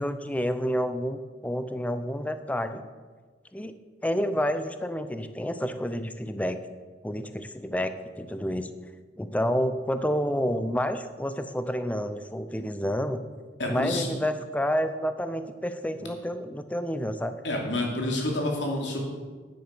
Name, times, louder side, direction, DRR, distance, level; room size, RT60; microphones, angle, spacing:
voice 1, 0.0-2.9 3.5-3.8 4.0-6.6 7.0-7.9 8.2-8.7 9.2-13.2 13.7-17.3, equal, 10° left, 10 dB, 0.6 m, -29 dB
voice 2, 13.6-14.1 17.4-19.0, left 1 dB, 85° left, 0 dB, 2.7 m, -28 dB
9.9 x 7.9 x 6.8 m, 1.4 s
head